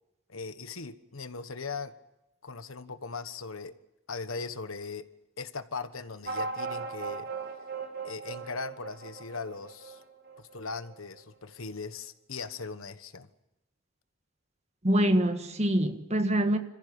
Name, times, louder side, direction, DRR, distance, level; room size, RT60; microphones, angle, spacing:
voice 1, 0.3-1.9 2.4-3.7 4.1-5.0 5.4-7.3 8.0-10.0 10.4-13.3, left 4 dB, 75° left, 1.3 m, -39 dB
sound 1, 6.3-11.2, right 4 dB, 50° right, 2.1 m, -38 dB
voice 2, 14.8-16.6, right 1 dB, 30° right, 1.6 m, -25 dB
27.5 x 15.0 x 8.7 m
head